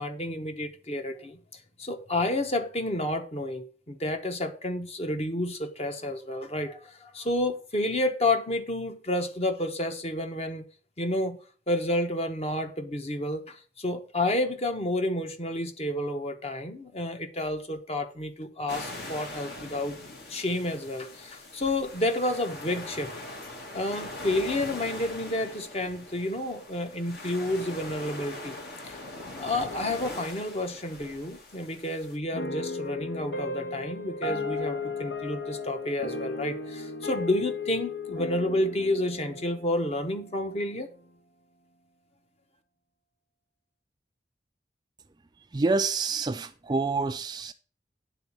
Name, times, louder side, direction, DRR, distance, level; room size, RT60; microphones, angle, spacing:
voice 1, 0.0-10.6 11.0-11.4 11.7-20.0 20.3-23.3 23.7-28.6 28.8-29.0 29.4-40.9, left 1 dB, 35° left, 1.1 m, -30 dB
sound 1, 18.7-32.2, left 2 dB, 65° left, 1.9 m, -41 dB
sound 2, 32.3-40.9, left 3 dB, 85° left, 1.4 m, -35 dB
voice 2, 45.5-47.5, right 3 dB, 25° right, 0.4 m, -27 dB
9.3 x 4.1 x 7.2 m
head